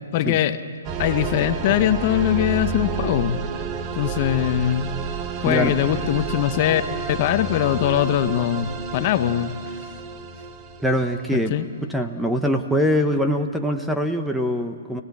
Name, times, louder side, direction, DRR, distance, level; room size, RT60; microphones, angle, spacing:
voice 1, 0.1-0.6 1.0-3.4 3.9-4.9 5.4-6.8 7.1-9.5 11.3-11.6, left 11 dB, 40° left, 10 dB, 1.0 m, -21 dB
sound 1, 0.8-11.5, right 5 dB, 25° right, 1.1 m, -30 dB
voice 2, 10.8-11.5 11.8-15.0, equal, ahead, 5 dB, 0.9 m, -23 dB
28.5 x 18.0 x 8.6 m, 2.4 s
hypercardioid pair, 145°, 0 cm